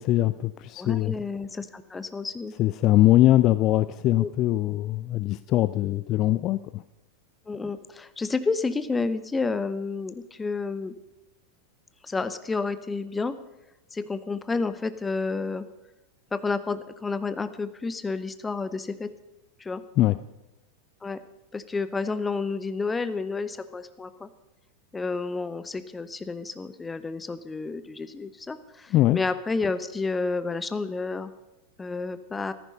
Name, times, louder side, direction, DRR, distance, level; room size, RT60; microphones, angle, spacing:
voice 1, 0.0-1.1 2.6-6.8 20.0-20.2 28.9-29.2, left 15 dB, 35° left, 14 dB, 0.4 m, -22 dB
voice 2, 0.8-2.5 4.2-4.3 7.5-10.9 12.0-13.3 13.9-15.7 16.3-19.1 19.6-19.8 21.0-21.2 21.5-24.3 24.9-31.3 31.8-32.5, left 4 dB, 10° left, 13 dB, 0.9 m, -30 dB
14.5 x 14.0 x 5.3 m, 1.0 s
figure-of-eight pair, 90°, 0 cm